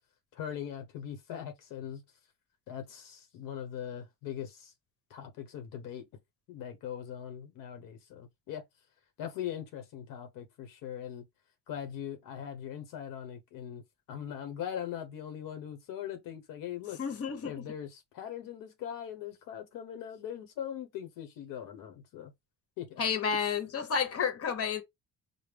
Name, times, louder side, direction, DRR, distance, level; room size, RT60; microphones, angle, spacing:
voice 1, 0.3-2.0 2.7-4.7 5.1-6.1 6.5-8.6 9.2-11.2 11.7-17.0 17.4-22.3 22.8-23.0, left 9 dB, 85° left, 0.9 m, -41 dB
voice 2, 17.0-17.6 23.0-24.8, left 6 dB, 45° left, 1.1 m, -31 dB
5.0 x 2.0 x 3.3 m
cardioid pair, 100°, 32 cm